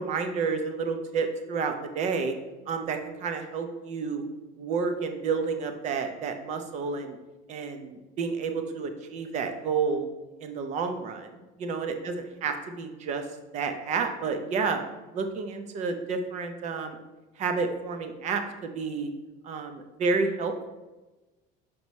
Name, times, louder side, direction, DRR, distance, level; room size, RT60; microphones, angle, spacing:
voice 1, 0.0-2.3 2.7-4.2 4.6-7.2 7.5-10.1 10.4-13.2 13.5-14.8 15.1-17.0 17.4-19.1 19.4-20.7, right 5 dB, 40° right, 7 dB, 0.7 m, -30 dB
6.3 x 4.6 x 4.1 m, 1.1 s
cardioid pair, 170°, 19 cm